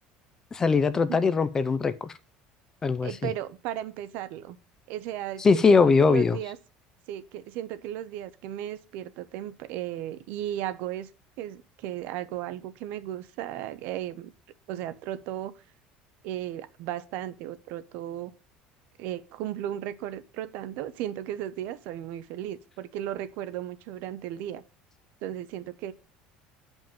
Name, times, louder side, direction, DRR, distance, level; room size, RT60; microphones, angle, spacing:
voice 1, 0.5-2.1 2.8-3.1 5.4-6.4, left 4 dB, 15° left, 0.4 m, -21 dB
voice 2, 3.0-4.6 4.9-6.6 7.1-11.1 11.4-14.3 14.7-15.5 16.2-18.3 19.0-24.6 25.2-25.9, right 12 dB, 60° right, 0.7 m, -35 dB
7.5 x 5.4 x 7.1 m
cardioid pair, 180°, 4 cm